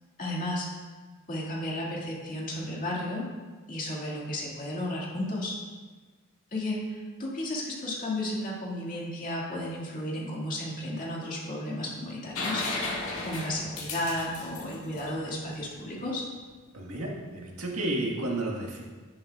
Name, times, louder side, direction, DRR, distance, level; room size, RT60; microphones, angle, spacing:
voice 1, 0.2-0.7 1.3-3.3 3.7-5.6 6.5-12.6 13.2-16.2, left 1 dB, 40° left, -4 dB, 2.1 m, -33 dB
sound 1, 12.3-16.0 17.9-18.0, left 2 dB, 75° left, 1.8 m, -35 dB
voice 2, 16.7-18.8, right 1 dB, 85° right, -1 dB, 1.7 m, -32 dB
10.5 x 10.0 x 2.4 m, 1.4 s
head